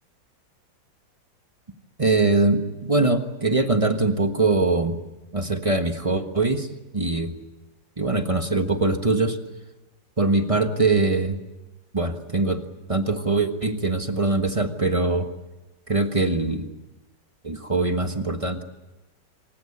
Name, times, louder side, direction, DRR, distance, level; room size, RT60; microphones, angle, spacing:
voice 1, 2.0-5.0 5.3-6.7 6.9-7.3 8.0-9.4 10.2-11.4 11.9-12.6 12.9-15.3 15.9-16.7 17.4-18.6, right 3 dB, 20° right, 7 dB, 1.2 m, -22 dB
26.5 x 16.5 x 9.8 m, 1.1 s
omnidirectional pair, 2.0 m